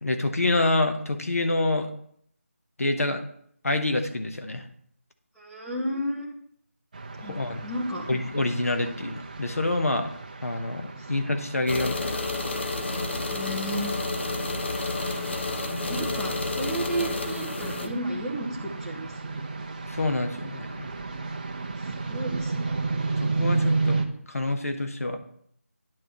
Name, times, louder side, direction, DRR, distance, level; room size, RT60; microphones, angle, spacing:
voice 1, 0.0-1.9 2.8-3.2 3.6-4.7 7.2-7.6 8.1-10.1 10.4-12.2 19.9-20.9 23.2-24.0 24.3-25.2, left 2 dB, 90° left, 6 dB, 1.2 m, -27 dB
voice 2, 5.4-6.3 7.2-8.0 11.0-11.1 13.3-14.2 15.9-19.4 21.8-22.8, right 1 dB, ahead, -7 dB, 0.5 m, -33 dB
sound 1, 6.9-24.1, right 3 dB, 35° right, 0.8 m, -33 dB
sound 2, 11.7-17.9, left 3 dB, 50° left, 0.9 m, -30 dB
9.9 x 7.5 x 3.1 m, 0.65 s
figure-of-eight pair, 170°, 8 cm